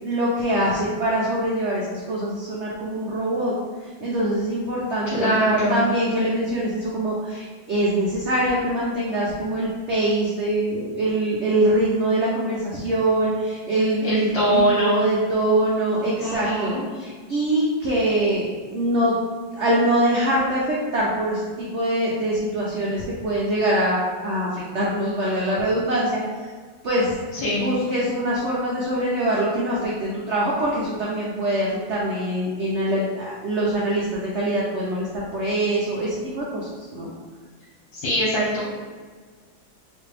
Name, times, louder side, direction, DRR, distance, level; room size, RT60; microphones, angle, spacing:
voice 1, 0.0-3.5 4.0-5.4 5.7-19.2 19.6-26.2 26.8-27.1 27.6-37.1, right 1 dB, 90° right, -5 dB, 0.6 m, -23 dB
voice 2, 5.1-5.8 14.0-15.0 16.2-16.8 27.3-27.6 37.9-38.8, right 1 dB, 85° left, -8 dB, 1.8 m, -22 dB
4.0 x 2.5 x 3.3 m, 1.5 s
omnidirectional pair, 2.0 m